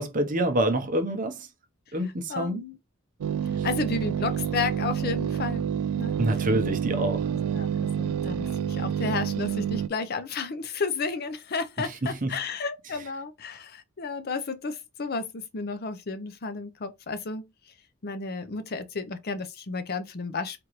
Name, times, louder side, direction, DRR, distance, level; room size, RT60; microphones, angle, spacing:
voice 1, 0.0-1.5 1.9-2.6 6.2-7.3 12.0-12.4, right 1 dB, 35° right, 0.7 m, -26 dB
voice 2, 2.0-2.8 3.6-5.6 6.0-6.2 7.5-17.4 18.0-20.6, left 4 dB, 45° left, 0.5 m, -32 dB
sound 1, 3.2-9.9, right 8 dB, 85° right, 0.3 m, -28 dB
4.4 x 2.5 x 3.0 m
head